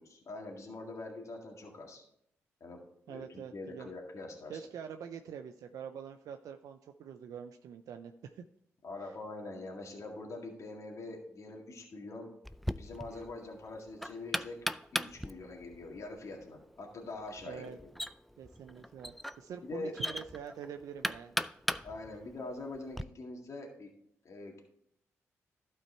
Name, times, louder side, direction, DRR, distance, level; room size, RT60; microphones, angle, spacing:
voice 1, 0.0-2.0 2.6-2.8 3.1-4.6 8.8-12.3 12.8-14.6 14.9-17.9 19.6-20.0 21.8-23.9 24.2-24.6, left 2 dB, 55° left, 0 dB, 1.9 m, -44 dB
voice 2, 3.1-3.9 4.5-8.4 9.0-9.1 17.4-17.8 18.4-21.3, right 7 dB, 75° right, 6 dB, 0.4 m, -45 dB
Knock, 12.4-23.0, equal, ahead, 0.4 m, -39 dB
12.0 x 4.5 x 4.4 m, 0.73 s
supercardioid pair, 50°, 6 cm